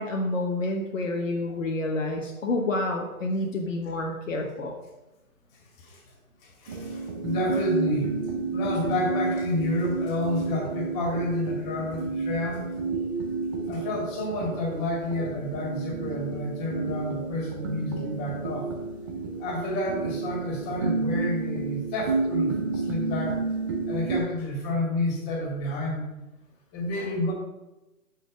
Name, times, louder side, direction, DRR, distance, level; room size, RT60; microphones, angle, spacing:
voice 1, 0.0-4.8, left 2 dB, 60° left, 1 dB, 1.2 m, -29 dB
voice 2, 6.4-8.2 8.5-12.7 13.7-18.7 19.4-23.4 23.9-26.1 26.7-27.3, left 1 dB, 20° left, -1 dB, 2.3 m, -30 dB
sound 1, 6.7-24.2, right 4 dB, 15° right, 0.5 m, -31 dB
5.7 x 5.7 x 6.2 m, 1.0 s
figure-of-eight pair, 135°, 43 cm